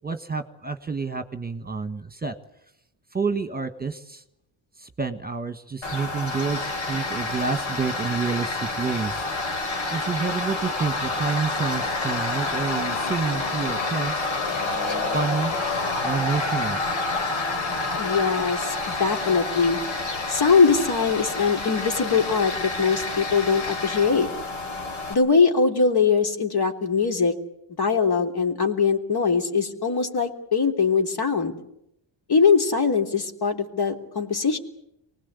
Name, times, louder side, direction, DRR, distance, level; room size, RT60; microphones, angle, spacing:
voice 1, 0.0-2.3 3.1-4.2 4.8-9.3 9.9-14.2 15.1-15.5 16.0-16.8, right 5 dB, 20° right, 8 dB, 1.5 m, -29 dB
Tools, 5.8-25.1, left 3 dB, 70° left, 4.1 m, -28 dB
voice 2, 18.0-19.8 20.3-24.3 25.1-27.3 27.8-31.6 32.3-34.6, left 5 dB, 50° left, 4 dB, 3.5 m, -22 dB
24.5 x 19.5 x 8.3 m, 0.80 s
cardioid pair, 95°, 49 cm